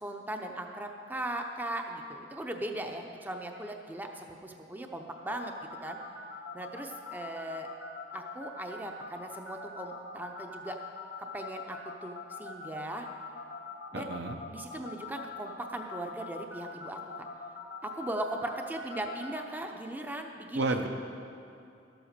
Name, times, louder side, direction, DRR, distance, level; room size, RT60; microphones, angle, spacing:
voice 1, 0.0-5.5 5.8-6.0 6.5-7.7 8.1-10.8 11.3-13.1 13.9-14.1 14.5-17.1 17.8-20.8, right 1 dB, 10° right, 3 dB, 0.6 m, -38 dB
sound 1, 5.3-19.4, left 4 dB, 70° left, 1.5 m, -43 dB
voice 2, 13.9-14.4 20.5-20.9, right 2 dB, 70° right, 5 dB, 0.8 m, -31 dB
12.0 x 7.9 x 6.6 m, 2.7 s
head